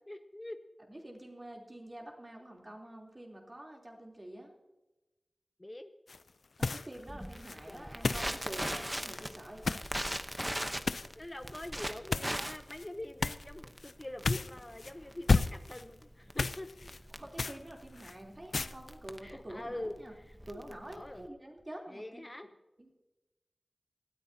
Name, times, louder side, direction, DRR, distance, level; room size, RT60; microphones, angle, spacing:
voice 1, 0.1-0.6 5.6-5.9 7.7-8.2 11.2-16.7 19.2-20.6 20.9-21.3 21.9-22.5, left 1 dB, 25° left, 8 dB, 0.6 m, -44 dB
voice 2, 0.9-4.5 6.6-9.8 11.4-11.5 17.1-20.1 20.5-22.3 22.8-22.9, right 1 dB, 30° right, 0 dB, 3.2 m, -47 dB
sound 1, 6.1-6.3 6.6-7.0 7.4-9.9 10.2-10.4 10.9-11.1 11.5-11.7 12.1-12.9 13.2-13.5 13.8-13.9 14.2-14.9 15.3-15.8 16.4-17.0 17.4-18.1 18.5-18.8, left 4 dB, 80° left, 0.4 m, -33 dB
Crackle, 7.1-21.3, equal, 10° right, 0.9 m, -40 dB
19.0 x 13.5 x 2.8 m, 1.1 s
wide cardioid pair, 70°, 0 cm